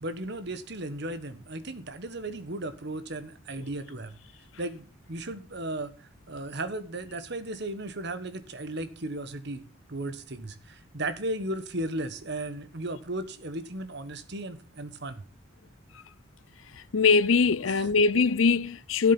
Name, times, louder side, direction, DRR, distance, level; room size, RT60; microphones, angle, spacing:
voice 1, 0.0-4.1 4.6-9.6 9.9-15.2 17.7-17.9, right 1 dB, 55° right, 1.3 m, -35 dB
voice 2, 16.9-19.1, left 4 dB, 65° left, 0.6 m, -22 dB
12.5 x 7.5 x 5.9 m
head